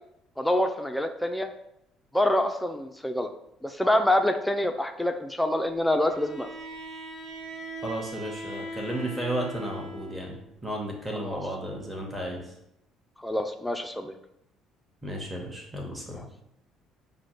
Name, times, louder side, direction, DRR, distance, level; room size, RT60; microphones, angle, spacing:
voice 1, 0.4-1.5 2.1-3.3 3.6-6.5 11.2-11.4 13.2-14.1, left 1 dB, 5° left, 5 dB, 0.3 m, -26 dB
Bowed string instrument, 6.0-10.3, equal, 60° right, 1.4 m, -40 dB
voice 2, 7.8-12.5 15.0-16.2, right 1 dB, 15° right, -1 dB, 0.9 m, -34 dB
6.0 x 2.0 x 3.0 m, 0.80 s
figure-of-eight pair, 50°, 0 cm